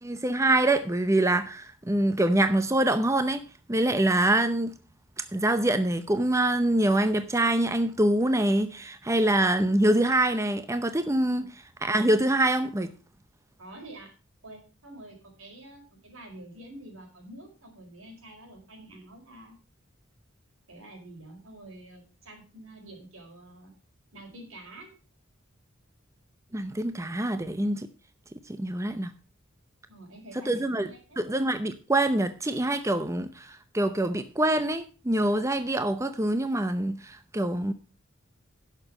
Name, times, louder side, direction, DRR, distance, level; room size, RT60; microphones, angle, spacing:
voice 1, 0.0-3.4 3.7-4.7 5.3-11.5 11.8-12.9 26.5-27.9 28.5-29.1 30.5-30.9 31.2-37.7, right 1 dB, 15° right, 0.7 m, -25 dB
voice 2, 13.6-14.1 14.4-19.6 20.7-23.7 24.1-24.9 29.9-31.2, right 1 dB, 85° right, 4.7 m, -47 dB
11.0 x 6.8 x 6.3 m
head